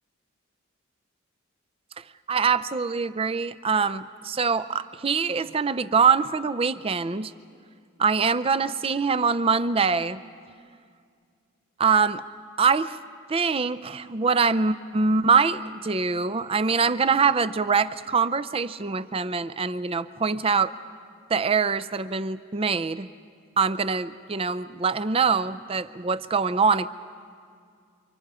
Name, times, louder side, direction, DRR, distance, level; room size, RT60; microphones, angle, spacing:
voice 1, 2.3-7.3 8.0-10.2 11.8-12.2 12.6-13.0 13.3-20.7 21.3-23.1 23.6-26.9, right 5 dB, 30° right, 13 dB, 0.5 m, -24 dB
29.0 x 26.0 x 4.9 m, 2.2 s
head